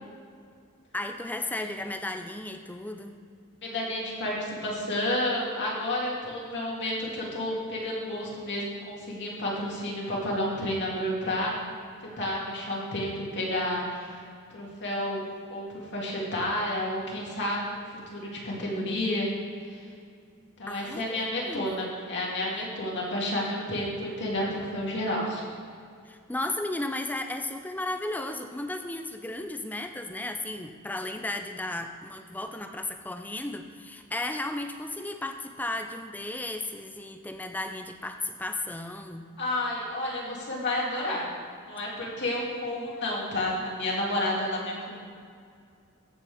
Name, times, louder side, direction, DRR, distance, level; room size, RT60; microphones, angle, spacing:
voice 1, 0.9-3.2 20.7-21.9 26.1-39.2, left 2 dB, 10° left, 6 dB, 0.4 m, -34 dB
voice 2, 3.6-11.5 12.0-14.2 14.5-15.2 15.5-17.8 18.1-19.3 19.7-19.8 20.6-25.4 39.4-41.3 41.6-45.0, left 1 dB, 55° left, -4 dB, 2.5 m, -30 dB
15.0 x 7.4 x 3.5 m, 2.2 s
head